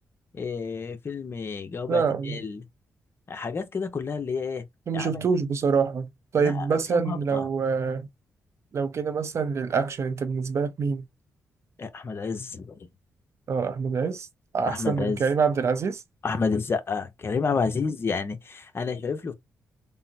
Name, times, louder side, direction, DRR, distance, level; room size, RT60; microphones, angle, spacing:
voice 1, 0.3-2.6 3.3-4.6 4.9-5.1 6.4-7.4 11.8-12.7 14.7-15.2 16.2-19.3, left 5 dB, 45° left, 0.8 m, -30 dB
voice 2, 1.9-2.4 4.9-8.1 8.7-11.1 13.5-14.3 14.5-16.0, right 5 dB, 55° right, 0.6 m, -26 dB
3.6 x 2.0 x 2.8 m
cardioid pair, 80°, 6 cm